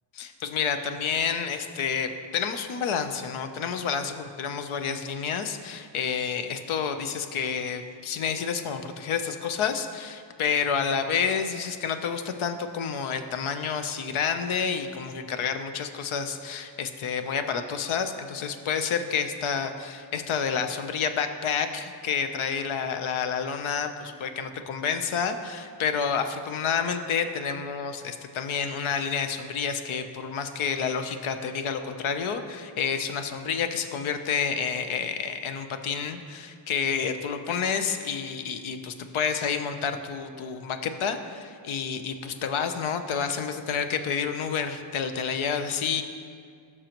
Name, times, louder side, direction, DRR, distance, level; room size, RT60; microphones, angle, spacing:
voice 1, 0.2-46.0, left 6 dB, 85° left, 8 dB, 0.8 m, -29 dB
16.0 x 6.2 x 3.0 m, 2.2 s
cardioid pair, 95°, 47 cm